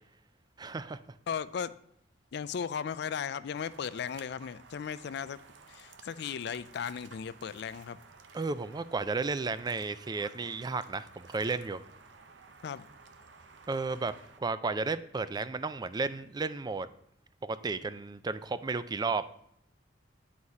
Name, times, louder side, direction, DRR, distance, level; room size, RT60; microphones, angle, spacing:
voice 1, 0.6-1.0 8.3-11.8 13.7-16.9 17.4-19.2, right 4 dB, 20° right, 14 dB, 0.4 m, -33 dB
voice 2, 1.3-1.8 2.3-5.4 5.7-8.0 12.6-12.9, left 7 dB, 65° left, 16 dB, 0.4 m, -36 dB
sound 1, 3.6-14.4, right 4 dB, 75° right, 0.7 m, -55 dB
9.7 x 4.1 x 4.8 m, 0.75 s
head